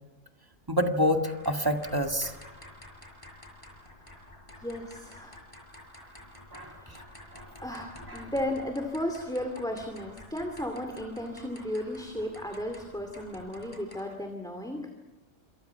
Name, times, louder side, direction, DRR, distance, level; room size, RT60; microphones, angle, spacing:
voice 1, 0.7-2.3 6.5-7.0 7.3-7.4 7.7-7.8 8.1-8.3, equal, 15° right, 4 dB, 2.0 m, -28 dB
sound 1, 1.0-14.2, left 1 dB, 25° left, 5.4 m, -50 dB
voice 2, 4.6-5.4 6.8-14.8, left 1 dB, 5° left, 3 dB, 2.4 m, -35 dB
28.5 x 27.0 x 5.8 m, 1.1 s
omnidirectional pair, 1.3 m